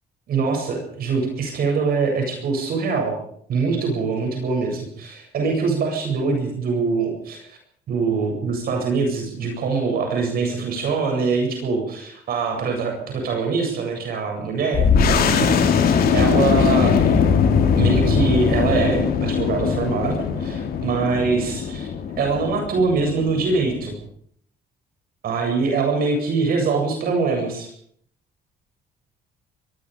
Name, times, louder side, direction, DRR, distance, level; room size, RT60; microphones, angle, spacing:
voice 1, 0.3-3.1 3.5-7.6 7.9-14.9 15.1-15.6 15.9-17.0 17.8-21.9 22.2-23.9 25.2-27.7, right 4 dB, 65° right, 2 dB, 8.0 m, -23 dB
sound 1, 14.7-24.0, left 6 dB, 65° left, 4.1 m, -20 dB
24.5 x 22.5 x 5.2 m, 0.63 s
cardioid pair, 125°, 17 cm